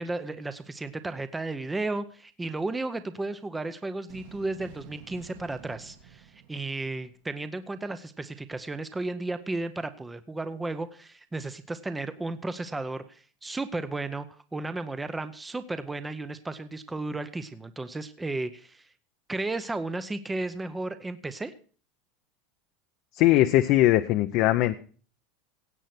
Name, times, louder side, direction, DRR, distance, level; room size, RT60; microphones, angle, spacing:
voice 1, 0.0-14.3 14.5-18.9 19.3-21.5, right 2 dB, 10° right, 11 dB, 0.7 m, -34 dB
sound 1, 4.1-7.5, right 8 dB, 60° right, 1.8 m, -50 dB
voice 2, 23.1-24.7, left 15 dB, 45° left, 8 dB, 0.7 m, -20 dB
17.0 x 8.1 x 5.9 m, 0.40 s
supercardioid pair, 165°, 0 cm